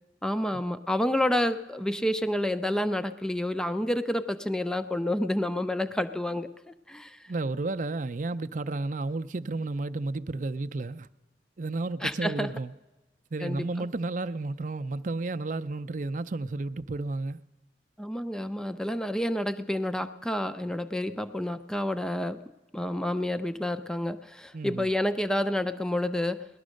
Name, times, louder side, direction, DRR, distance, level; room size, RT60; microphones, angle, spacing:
voice 1, 0.2-7.2 12.0-12.5 13.4-13.9 18.0-22.4 22.7-26.5, left 1 dB, 5° left, 0.5 m, -29 dB
voice 2, 7.3-11.1 11.6-12.7 13.3-17.4 24.5-24.9, right 2 dB, 45° right, 0.5 m, -32 dB
18.5 x 12.0 x 6.4 m
head